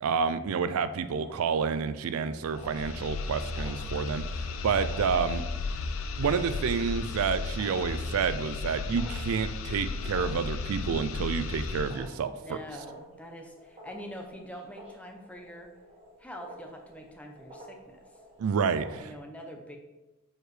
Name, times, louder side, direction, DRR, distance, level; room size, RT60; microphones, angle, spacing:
voice 1, 0.0-4.2 4.6-5.4 6.2-12.6 18.4-19.1, right 6 dB, 85° right, 12 dB, 0.4 m, -29 dB
sound 1, 1.2-19.2, right 1 dB, 30° right, 1.6 m, -51 dB
sound 2, 2.5-12.1, left 4 dB, 70° left, 0.4 m, -34 dB
voice 2, 12.3-15.7 16.2-18.0 19.0-19.8, equal, 5° left, 2 dB, 0.6 m, -44 dB
6.6 x 4.8 x 3.2 m, 1.0 s
head